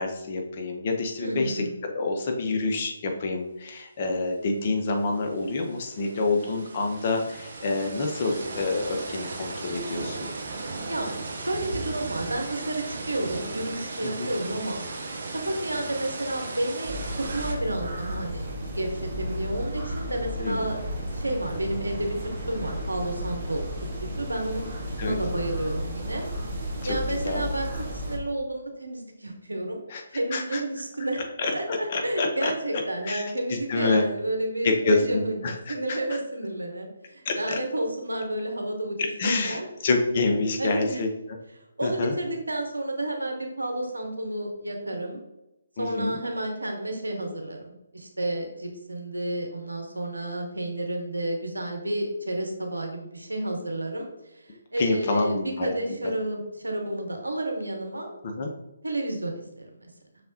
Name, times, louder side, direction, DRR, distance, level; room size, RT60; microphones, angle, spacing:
voice 1, 0.0-10.3 14.0-14.3 20.4-20.7 25.0-25.2 26.9-27.0 27.2-27.4 29.9-30.0 30.3-30.6 31.4-33.2 33.7-34.0 34.6-36.0 37.2-37.6 39.0-41.4 41.8-42.1 45.8-46.2 54.8-56.1 58.2-58.5, left 3 dB, 40° left, 3 dB, 0.7 m, -27 dB
voice 2, 1.2-1.7 10.9-11.1 11.3-14.9 15.3-23.6 24.0-24.7 25.0-26.2 26.6-29.8 30.1-31.2 31.5-39.0 39.2-39.7 40.6-41.0 41.8-45.2 45.8-58.2 58.8-59.9, right 1 dB, 85° right, 2 dB, 0.9 m, -31 dB
sound 1, 4.6-4.7 4.9-17.5, right 3 dB, 55° right, 0.8 m, -36 dB
sound 2, 16.8-28.2, equal, 30° right, 1.4 m, -33 dB
5.6 x 3.4 x 2.7 m, 0.95 s
figure-of-eight pair, 145°, 0 cm